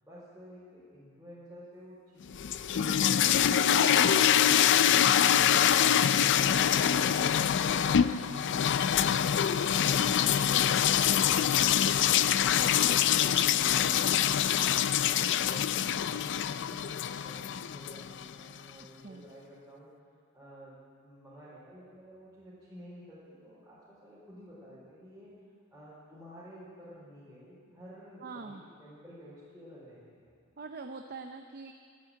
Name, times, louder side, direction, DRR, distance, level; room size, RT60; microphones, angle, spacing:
voice 1, 0.0-5.4 5.9-10.4 10.8-14.5 15.0-19.9 20.3-20.8 21.0-25.3 25.7-30.3, equal, 5° right, -13 dB, 4.8 m, -51 dB
sound 1, 2.3-18.3, left 9 dB, 60° left, 0.4 m, -25 dB
voice 2, 28.2-28.6 30.6-31.7, right 4 dB, 50° right, 4 dB, 0.7 m, -43 dB
12.5 x 10.0 x 9.3 m, 2.2 s
head